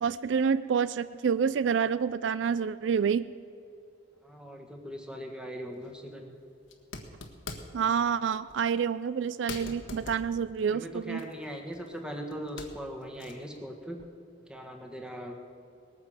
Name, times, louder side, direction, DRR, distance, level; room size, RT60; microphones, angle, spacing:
voice 1, 0.0-3.3 7.7-11.2, right 6 dB, 70° right, 16 dB, 0.4 m, -28 dB
voice 2, 4.2-6.3 10.7-14.0 14.5-15.5, equal, 5° right, 2 dB, 1.6 m, -40 dB
sound 1, 5.7-5.9 6.6-7.9 8.5-8.7 9.1-9.2 9.5-12.0 12.3-13.6, left 3 dB, 90° left, 1.5 m, -44 dB
19.5 x 9.4 x 7.4 m, 2.6 s
head